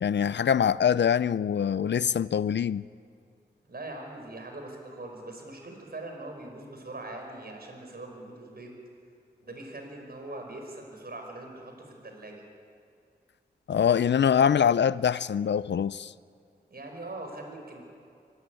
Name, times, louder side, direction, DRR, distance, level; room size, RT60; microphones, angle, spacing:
voice 1, 0.0-2.8 13.7-16.1, left 8 dB, 80° left, 0.5 m, -24 dB
voice 2, 3.7-8.8 9.4-12.4 16.7-17.8, right 2 dB, 60° right, 5.6 m, -42 dB
24.5 x 14.0 x 9.6 m
cardioid pair, 55°, 18 cm